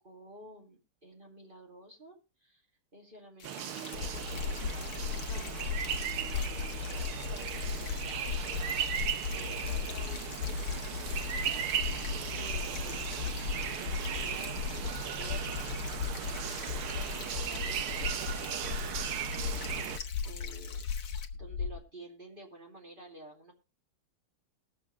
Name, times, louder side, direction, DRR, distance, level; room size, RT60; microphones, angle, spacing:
voice 1, 0.0-2.6 2.9-5.7 6.3-15.7 16.1-18.8 19.5-20.9 21.3-23.5, right 1 dB, 25° right, 0 dB, 2.5 m, -52 dB
sound 1, 3.4-21.3, left 6 dB, 50° left, 1.2 m, -47 dB
sound 2, 3.4-20.0, right 10 dB, 75° right, 1.7 m, -37 dB
sound 3, 3.9-21.8, left 6 dB, 90° left, 1.8 m, -37 dB
20.5 x 7.3 x 3.2 m, 0.28 s
omnidirectional pair, 2.4 m